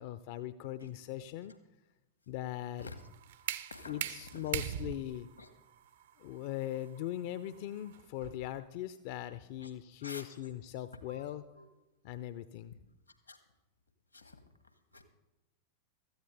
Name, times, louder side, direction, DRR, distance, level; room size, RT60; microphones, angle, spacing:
voice 1, 0.0-1.5 2.3-2.9 3.9-5.3 6.2-11.4 12.0-12.8, left 13 dB, 50° left, 13 dB, 0.5 m, -40 dB
sound 1, 2.8-8.6, right 11 dB, 55° right, 0.6 m, -42 dB
voice 2, 3.7-4.1 4.3-4.5 5.4-5.5 9.6-9.7 10.0-10.5 11.1-11.7 13.3-13.4 14.1-14.4 14.9-15.0, left 3 dB, 85° left, 8 dB, 1.6 m, -49 dB
16.0 x 14.0 x 3.3 m, 1.0 s
figure-of-eight pair, 90°, 0 cm